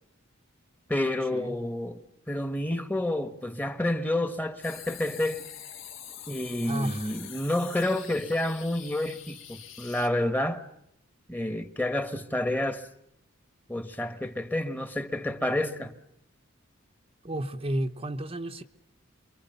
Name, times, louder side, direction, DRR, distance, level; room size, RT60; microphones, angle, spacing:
voice 1, 0.9-2.0 2.3-5.5 6.3-10.7 11.3-12.8 13.7-15.9, left 1 dB, 10° left, 1.4 m, -29 dB
sound 1, 4.6-10.1, left 9 dB, 65° left, 2.4 m, -45 dB
voice 2, 6.6-7.1 17.2-18.6, right 1 dB, 25° right, 0.9 m, -32 dB
28.5 x 23.5 x 6.9 m
head